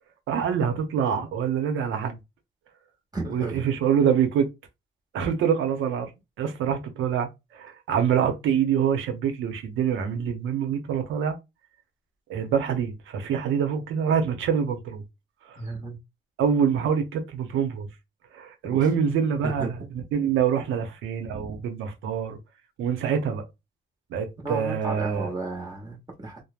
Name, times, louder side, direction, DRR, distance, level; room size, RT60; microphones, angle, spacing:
voice 1, 0.3-2.2 3.3-4.5 5.1-6.1 6.4-11.4 12.3-15.0 15.4-15.6 16.4-17.9 18.3-22.4 22.8-23.4 24.1-25.3, right 7 dB, 85° right, 0.7 m, -25 dB
voice 2, 3.1-3.6 15.6-16.0 18.7-18.9 19.4-19.7 24.4-26.4, right 2 dB, 20° right, 1.0 m, -33 dB
3.1 x 2.0 x 2.4 m
cardioid pair, 90°, 20 cm